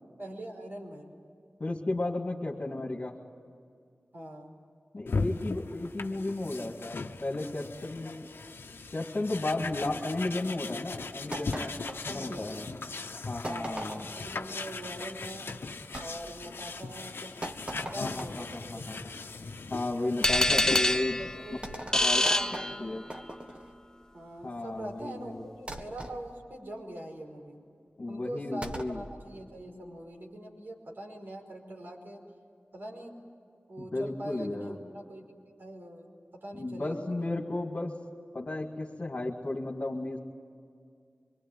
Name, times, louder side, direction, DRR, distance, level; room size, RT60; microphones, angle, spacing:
voice 1, 0.2-1.1 4.1-4.6 12.1-12.7 13.5-15.6 16.0-17.3 17.8-18.7 20.5-20.9 21.2-22.9 24.1-27.6 28.1-32.2 32.7-33.2 33.7-35.3 35.6-37.3, right 1 dB, 65° right, 1 dB, 5.2 m, -43 dB
voice 2, 1.6-3.2 4.9-8.3 8.9-11.8 12.0-12.6 13.3-14.0 18.0-19.0 19.7-21.3 22.0-22.2 22.8-23.0 24.4-25.5 28.0-29.0 33.8-34.7 36.5-37.9 38.3-40.2, left 2 dB, 50° left, -2 dB, 2.1 m, -34 dB
sound 1, 5.1-21.0, left 4 dB, 85° left, 1.0 m, -39 dB
sound 2, 11.3-12.7 13.4-14.3 15.9-16.1 17.4-18.5 20.2-20.6 21.6-23.7 25.7-26.2 28.6-29.0, right 1 dB, 30° right, 1.8 m, -40 dB
sound 3, 20.2-23.2, left 1 dB, 15° left, 0.8 m, -26 dB
25.5 x 22.5 x 9.4 m, 2.3 s
wide cardioid pair, 55°, 4 cm